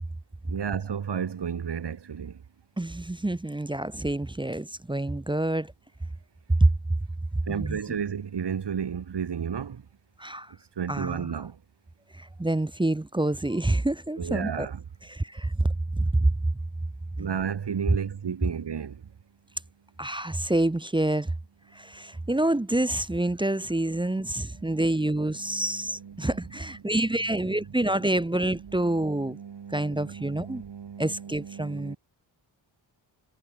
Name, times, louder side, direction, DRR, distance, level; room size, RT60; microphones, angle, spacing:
voice 1, 0.5-2.4 7.5-9.8 10.8-11.6 14.2-14.8 17.2-19.0 24.0-26.4 26.8-28.2 28.4-32.0, right 7 dB, 60° right, 2.3 m, -34 dB
voice 2, 2.8-5.7 6.6-6.7 7.5-7.8 10.2-10.5 10.9-11.3 12.2-14.7 15.1-15.7 15.9-16.3 17.2-17.3 20.0-21.3 21.8-29.4 29.7-30.6 31.0-32.0, right 1 dB, 10° right, 0.7 m, -27 dB
wide cardioid pair, 120°, 47 cm